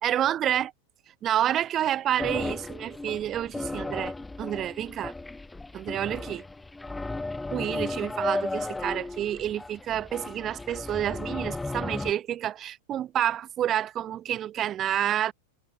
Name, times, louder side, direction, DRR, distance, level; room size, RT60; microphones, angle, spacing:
voice 1, 0.0-0.7 1.2-5.1 5.7-6.4 7.5-15.3, right 11 dB, 30° right, 5.2 m, -29 dB
sound 1, 2.2-12.1, left 2 dB, 10° left, 6.9 m, -35 dB
figure-of-eight pair, 90°, 0 cm